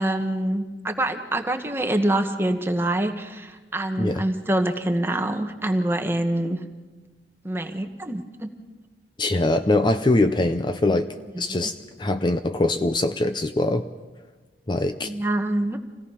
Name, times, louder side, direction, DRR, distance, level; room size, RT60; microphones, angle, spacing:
voice 1, 0.0-6.6 7.4-8.5 11.3-11.6 15.0-15.8, right 1 dB, 15° right, 6 dB, 1.3 m, -25 dB
voice 2, 9.2-13.9 14.7-15.1, left 2 dB, 25° left, 9 dB, 0.6 m, -23 dB
27.0 x 17.0 x 5.7 m, 1.3 s
head